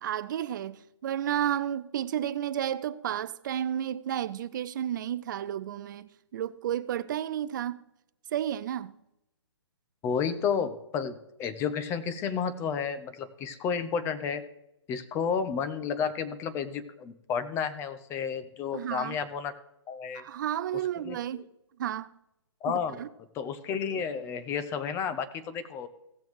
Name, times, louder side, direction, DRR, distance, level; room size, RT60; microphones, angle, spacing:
voice 1, 0.0-7.8 8.3-9.0 18.7-19.2 20.1-21.5 21.8-22.1 22.7-23.1, right 10 dB, 40° right, 0.5 m, -32 dB
voice 2, 10.0-14.4 14.9-19.5 19.9-20.2 21.0-21.4 22.6-23.0 23.3-25.9, left 6 dB, 15° left, 0.7 m, -31 dB
17.0 x 6.9 x 3.1 m
hypercardioid pair, 145°, 15 cm